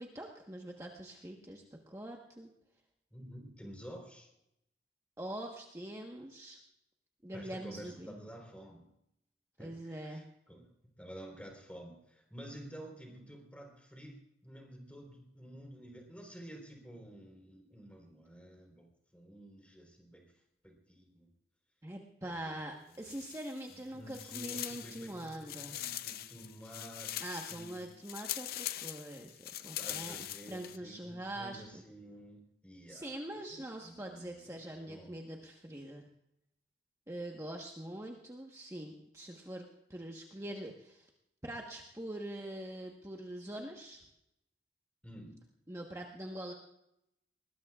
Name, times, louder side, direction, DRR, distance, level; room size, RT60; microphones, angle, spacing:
voice 1, 0.0-2.5 5.2-6.6 7.2-8.1 9.6-10.2 21.8-25.8 27.2-31.8 32.9-36.1 37.1-41.1 41.4-44.0 45.7-46.5, right 1 dB, 15° right, 0 dB, 1.2 m, -44 dB
voice 2, 3.1-4.3 7.3-8.9 9.6-10.7 11.0-20.3 20.6-21.3 22.2-22.6 22.9-23.0 23.7-27.2 27.5-27.8 29.8-35.1 45.0-45.4, right 1 dB, 5° left, 2 dB, 3.9 m, -51 dB
sound 1, 22.9-23.8 24.1-30.8, left 12 dB, 55° left, 0.5 m, -42 dB
21.0 x 20.0 x 2.4 m, 0.81 s
head